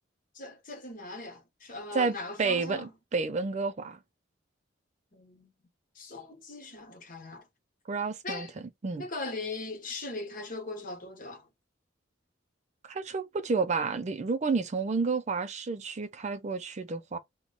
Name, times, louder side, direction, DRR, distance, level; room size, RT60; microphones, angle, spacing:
voice 1, 0.3-2.9 5.1-5.5 5.9-7.5 8.2-8.5 9.0-11.5, left 3 dB, 45° left, 1.2 m, -39 dB
voice 2, 1.9-4.0 7.9-8.5 8.8-9.0 12.8-17.2, right 4 dB, 40° right, 0.4 m, -30 dB
3.0 x 2.2 x 3.9 m
head